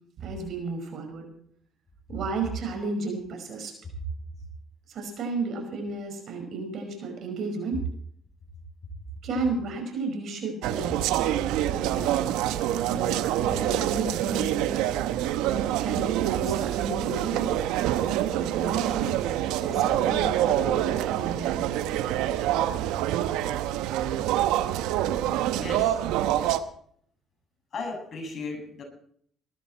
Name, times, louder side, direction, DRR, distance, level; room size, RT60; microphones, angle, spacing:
voice 1, 0.2-1.2 2.1-3.7 4.9-7.8 9.2-11.3 11.7-12.3 12.9-14.7 15.8-17.5 17.9-18.0 18.3-19.1 19.6-21.7, right 3 dB, 65° right, 5 dB, 5.3 m, -33 dB
sound 1, 10.6-26.6, right 12 dB, 85° right, 0.9 m, -26 dB
voice 2, 25.5-26.0 27.7-28.8, left 3 dB, 50° left, 2 dB, 7.2 m, -35 dB
19.5 x 13.5 x 4.3 m, 0.62 s
supercardioid pair, 70°, 0 cm